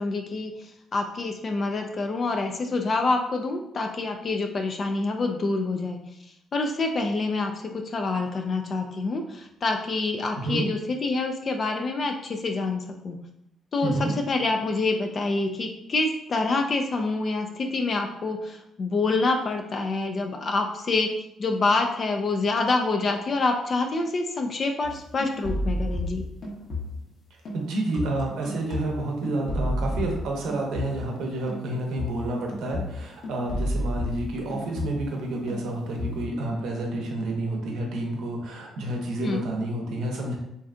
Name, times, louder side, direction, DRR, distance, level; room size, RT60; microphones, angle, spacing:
voice 1, 0.0-6.0 6.5-13.2 13.7-13.9 14.3-21.1 21.4-26.2 39.2-39.4, left 3 dB, 45° left, 4 dB, 0.3 m, -27 dB
sound 1, 24.8-27.1 27.4-31.2 31.5-35.2 35.5-36.3, left 1 dB, 60° left, 1.0 m, -32 dB
voice 2, 27.5-40.4, right 2 dB, 80° right, 0 dB, 0.7 m, -29 dB
3.2 x 2.6 x 2.4 m, 0.79 s
cardioid pair, 90°, 0 cm